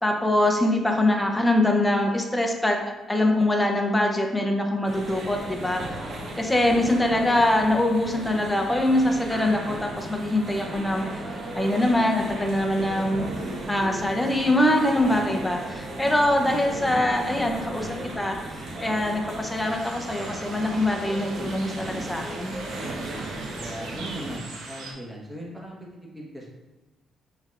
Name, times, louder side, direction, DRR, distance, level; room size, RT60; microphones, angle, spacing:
voice 1, 0.0-6.0 6.4-11.0 11.5-13.3 13.7-17.9 18.2-22.6, left 1 dB, 10° left, 1 dB, 0.6 m, -23 dB
sound 1, 4.8-24.4, right 2 dB, 60° right, 1.1 m, -35 dB
sound 2, 19.6-24.9, right 3 dB, 90° right, 0.8 m, -41 dB
voice 2, 23.5-26.5, right 1 dB, 10° right, -3 dB, 1.4 m, -38 dB
6.2 x 3.3 x 2.5 m, 1.1 s
cardioid pair, 90°, 0 cm